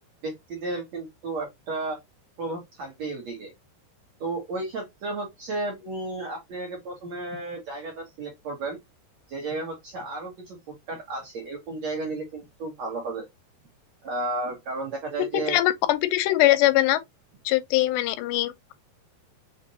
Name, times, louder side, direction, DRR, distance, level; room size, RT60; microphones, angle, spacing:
voice 1, 0.2-2.0 2.4-3.5 4.2-8.8 9.3-10.6 10.9-13.3 14.0-15.6, right 2 dB, 60° right, 1.8 m, -33 dB
voice 2, 15.3-17.0 17.5-18.7, left 15 dB, 85° left, 2.8 m, -22 dB
6.5 x 2.6 x 2.7 m
omnidirectional pair, 4.8 m